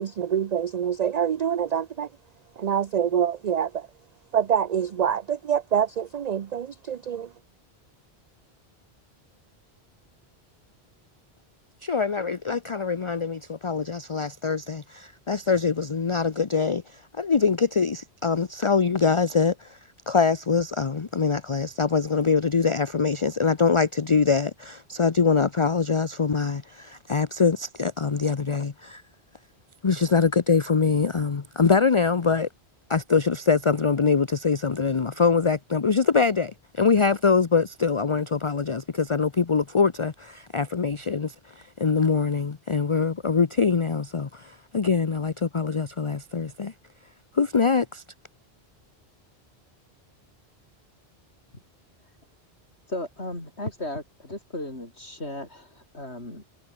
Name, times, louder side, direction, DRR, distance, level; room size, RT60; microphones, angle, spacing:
voice 1, 0.0-2.1 2.6-3.9 4.3-7.3, right 8 dB, 50° right, 0.6 m, -26 dB
voice 2, 11.8-16.8 17.2-19.8 20.1-29.0 29.8-32.5 32.9-41.3 41.8-46.7 47.3-48.0, left 5 dB, 30° left, 0.8 m, -23 dB
voice 3, 52.9-56.4, left 1 dB, 90° left, 7.4 m, -35 dB
omnidirectional pair, 1.1 m